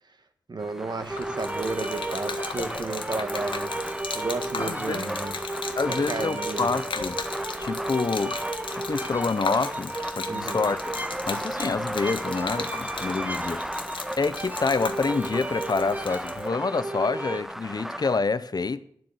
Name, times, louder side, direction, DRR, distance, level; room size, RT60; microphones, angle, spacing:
voice 1, 0.5-5.3 5.9-6.7 10.3-10.7, right 3 dB, 60° right, 1.6 m, -33 dB
sound 1, 0.6-18.2, equal, 5° right, 0.4 m, -37 dB
Gurgling / Liquid, 1.0-16.5, left 5 dB, 85° left, 1.0 m, -38 dB
sound 2, 1.1-17.4, right 2 dB, 20° right, 1.2 m, -34 dB
voice 2, 4.6-5.2 5.8-7.2 7.6-8.4 8.7-10.8 11.3-13.6 14.2-18.8, left 4 dB, 50° left, 0.7 m, -27 dB
9.5 x 7.7 x 7.9 m
cardioid pair, 50°, 8 cm